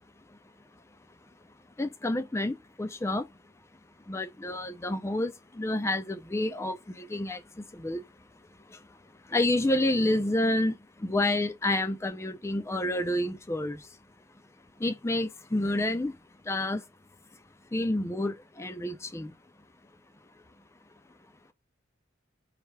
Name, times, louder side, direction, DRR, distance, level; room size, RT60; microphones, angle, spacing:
voice 1, 1.8-3.3 4.1-5.3 5.6-7.4 7.8-8.0 9.3-10.7 11.0-13.8 14.8-16.1 16.5-16.8 17.7-19.3, left 1 dB, 15° left, 0.4 m, -29 dB
3.2 x 2.8 x 4.6 m
head